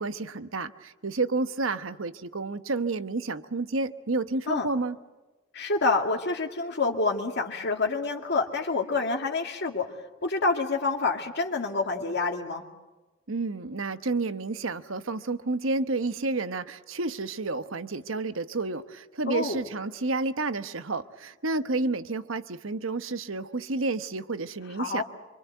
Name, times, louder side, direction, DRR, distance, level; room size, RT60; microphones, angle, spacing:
voice 1, 0.0-5.0 13.3-25.0, right 3 dB, 70° right, 12 dB, 1.1 m, -30 dB
voice 2, 5.5-9.9 10.2-12.6 19.3-19.6 24.8-25.0, left 3 dB, 55° left, 2 dB, 2.2 m, -27 dB
26.5 x 25.0 x 8.1 m, 1.2 s
head